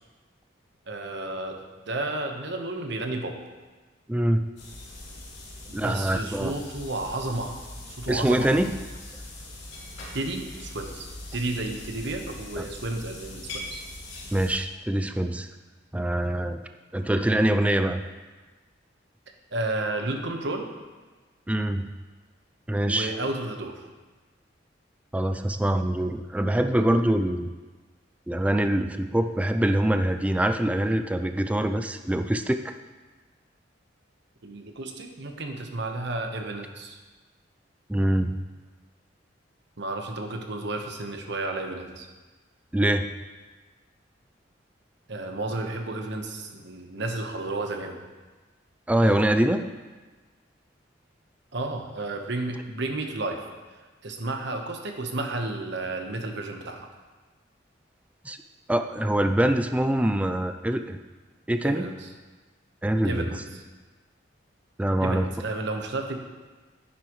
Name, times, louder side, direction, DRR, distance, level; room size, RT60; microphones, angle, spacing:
voice 1, 0.9-1.6 1.9-3.4 5.7-7.6 7.9-8.5 10.1-13.8 19.5-20.7 22.9-23.8 34.4-37.0 39.8-42.1 45.1-48.0 51.5-53.5 54.0-56.9 61.6-62.1 63.0-63.6 65.0-66.2, right 2 dB, 65° right, 3 dB, 1.1 m, -32 dB
voice 2, 4.1-4.5 5.7-6.6 8.1-8.7 12.6-12.7 14.3-15.5 15.9-16.6 16.9-18.0 21.5-21.9 22.7-23.1 25.1-27.5 28.3-32.7 37.9-38.4 42.7-43.1 48.9-49.7 58.3-58.4 58.7-61.0 61.5-61.9 62.8-63.3 64.8-65.3, right 1 dB, 5° right, 7 dB, 0.3 m, -24 dB
sound 1, 4.6-14.6, left 1 dB, 70° left, 3.0 m, -41 dB
10.0 x 9.8 x 3.1 m, 1.3 s
head